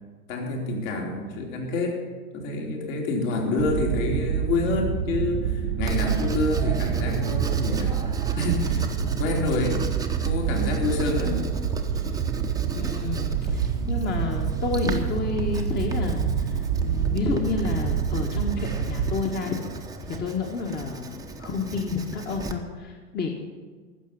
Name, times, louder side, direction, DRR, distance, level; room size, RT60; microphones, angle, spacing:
voice 1, 0.3-2.0 2.3-8.0 8.4-8.9 9.2-9.8 10.2-11.4, left 2 dB, 55° left, 1 dB, 3.3 m, -27 dB
sound 1, 3.6-19.2, right 8 dB, 55° right, 1.1 m, -27 dB
Writing, 5.9-22.5, right 3 dB, 10° right, 1.0 m, -37 dB
voice 2, 12.7-19.6 20.0-23.3, left 4 dB, 20° left, 1 dB, 1.4 m, -30 dB
15.0 x 6.7 x 9.6 m, 1.5 s
figure-of-eight pair, 100°, 46 cm